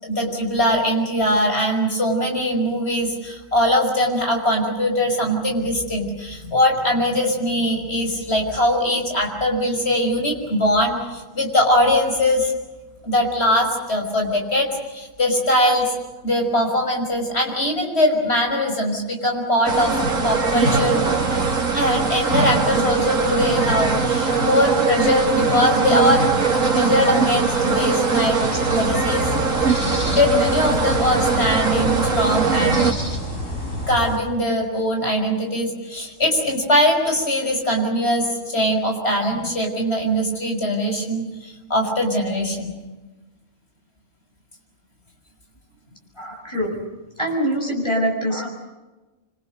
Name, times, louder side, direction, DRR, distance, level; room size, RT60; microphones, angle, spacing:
voice 1, 0.0-12.5 13.0-15.9 16.2-19.9 20.2-21.0 21.7-26.3 26.7-28.4 28.7-29.3 30.1-32.9 33.9-42.7, left 1 dB, 50° left, 2 dB, 6.3 m, -21 dB
sound 1, 19.6-32.9, right 4 dB, 75° right, 3.2 m, -21 dB
sound 2, 28.4-34.2, left 1 dB, 70° left, 6.1 m, -29 dB
voice 2, 46.2-46.8 47.2-48.5, equal, 20° left, 0 dB, 7.6 m, -24 dB
27.5 x 25.5 x 6.7 m, 1.1 s
omnidirectional pair, 1.4 m